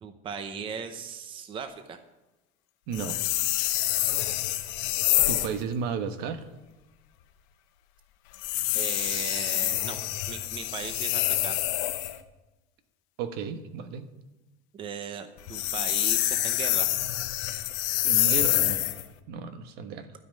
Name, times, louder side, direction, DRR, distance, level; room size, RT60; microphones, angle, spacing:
voice 1, 0.0-2.0 8.7-10.0 10.3-11.6 14.7-16.9, right 6 dB, 25° right, 8 dB, 0.7 m, -38 dB
sound 1, 2.9-5.6 8.3-12.2 15.4-19.1, left 15 dB, 75° left, 0.9 m, -27 dB
voice 2, 2.9-3.2 5.2-6.5 13.2-14.1 18.0-18.9 19.3-20.1, right 6 dB, 60° right, 9 dB, 1.2 m, -33 dB
13.0 x 5.4 x 8.8 m, 1.1 s
cardioid pair, 150°, 19 cm